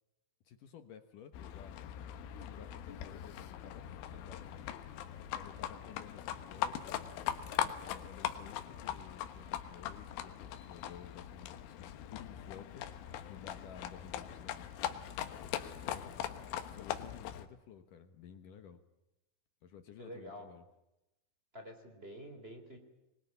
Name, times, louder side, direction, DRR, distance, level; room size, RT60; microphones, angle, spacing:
voice 1, 0.4-1.8 2.3-4.7 5.3-7.1 7.8-14.7 15.4-16.2 16.7-18.8 19.6-20.6, left 8 dB, 70° left, 8 dB, 2.1 m, -54 dB
Livestock farm animals working animals, 1.3-17.5, left 11 dB, 85° left, 3.9 m, -41 dB
voice 2, 20.0-20.5 21.5-22.8, equal, 15° right, 3 dB, 3.2 m, -48 dB
25.5 x 22.0 x 9.7 m, 0.91 s
omnidirectional pair, 5.5 m